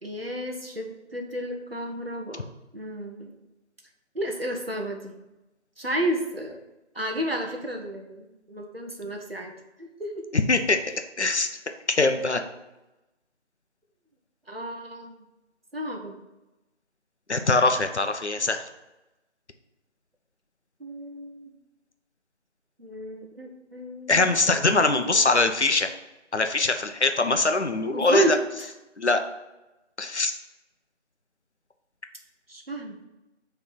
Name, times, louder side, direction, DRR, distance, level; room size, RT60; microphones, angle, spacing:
voice 1, 0.0-2.4 2.7-3.3 4.1-5.1 5.8-6.6 6.9-9.5 9.8-10.1 14.5-15.2 15.7-16.2 20.8-21.5 22.8-24.3 24.7-25.4 27.9-28.4 32.5-33.1, equal, 55° right, 2 dB, 0.9 m, -32 dB
voice 2, 10.3-10.8 11.2-11.5 12.0-12.4 17.3-18.6 24.1-25.9 26.3-28.4 29.0-29.2 30.0-30.3, left 3 dB, 70° left, 7 dB, 0.7 m, -22 dB
5.8 x 3.3 x 5.4 m, 0.99 s
figure-of-eight pair, 175°, 36 cm